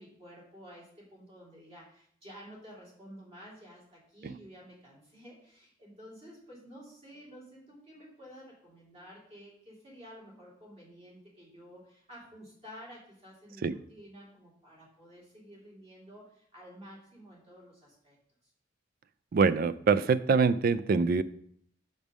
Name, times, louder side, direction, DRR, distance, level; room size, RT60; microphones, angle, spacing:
voice 1, 0.0-18.2 18.4-18.5, equal, 35° right, -4 dB, 2.8 m, -51 dB
voice 2, 19.3-21.2, right 5 dB, 50° right, 16 dB, 0.3 m, -24 dB
5.3 x 5.3 x 6.1 m, 0.66 s
head